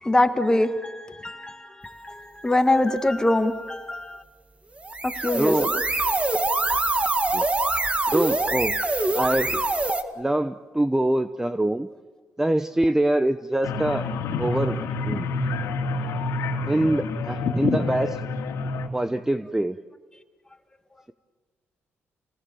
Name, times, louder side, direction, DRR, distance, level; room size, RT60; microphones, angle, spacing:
voice 1, 0.0-4.2 5.0-5.8 9.4-9.6 15.6-15.7, left 1 dB, 15° left, 7 dB, 1.9 m, -24 dB
sound 1, 4.8-10.0, right 2 dB, 25° right, 1.9 m, -24 dB
voice 2, 5.3-5.7 7.3-7.5 8.1-8.8 9.1-9.6 10.2-11.9 12.4-14.1 14.4-15.3 16.7-18.2 18.9-19.8, right 1 dB, 10° right, 11 dB, 0.8 m, -24 dB
sound 2, 13.6-18.9, left 3 dB, 80° left, 2.5 m, -27 dB
29.5 x 19.5 x 7.2 m, 1.4 s
cardioid pair, 85°, 5 cm